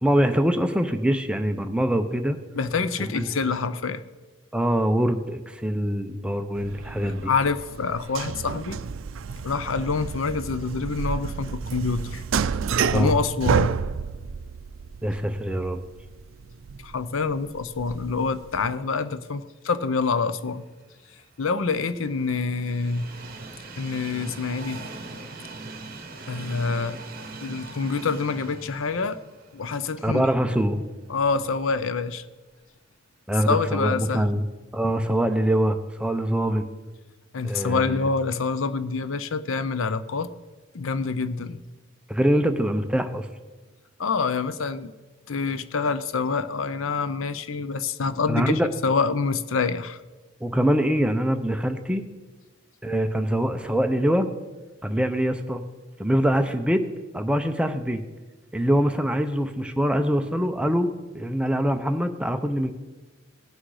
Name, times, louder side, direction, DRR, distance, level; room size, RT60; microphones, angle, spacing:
voice 1, 0.0-2.4 3.1-3.3 4.5-7.3 12.9-13.1 15.0-15.8 30.0-30.9 33.3-34.4 34.7-36.7 37.4-38.0 42.1-43.3 48.3-48.7 50.4-52.0 52.8-54.3 54.8-55.6 56.0-56.8 57.1-58.0 58.5-62.7, equal, 5° right, 7 dB, 0.6 m, -24 dB
voice 2, 2.5-4.0 7.0-8.8 9.4-12.2 12.5-12.6 12.9-13.7 16.8-20.6 21.4-23.1 23.8-24.8 26.3-27.0 27.4-29.2 29.5-30.3 31.1-32.2 33.4-34.4 37.3-40.3 40.7-41.6 44.0-44.9 45.3-50.0, left 4 dB, 70° left, 13 dB, 0.6 m, -26 dB
sound 1, 6.5-18.7, right 6 dB, 70° right, 0.4 m, -30 dB
Train, 20.8-30.9 31.3-31.4 32.5-32.6, right 3 dB, 45° right, 1.3 m, -41 dB
18.5 x 6.2 x 4.8 m, 1.3 s
head